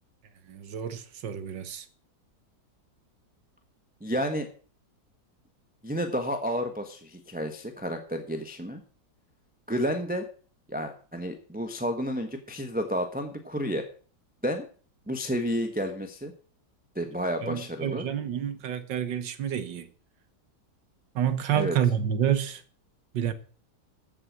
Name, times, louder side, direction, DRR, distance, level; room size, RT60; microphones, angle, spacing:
voice 1, 0.5-1.9 17.4-19.9 21.2-22.6 23.1-23.3, right 9 dB, 85° right, 1.8 m, -28 dB
voice 2, 4.0-4.5 5.8-8.8 9.7-10.2 10.7-13.8 14.4-14.6 15.1-16.3 16.9-18.0 21.5-21.8 23.3-23.4, equal, 5° right, 1.0 m, -31 dB
14.5 x 7.4 x 6.2 m
omnidirectional pair, 1.9 m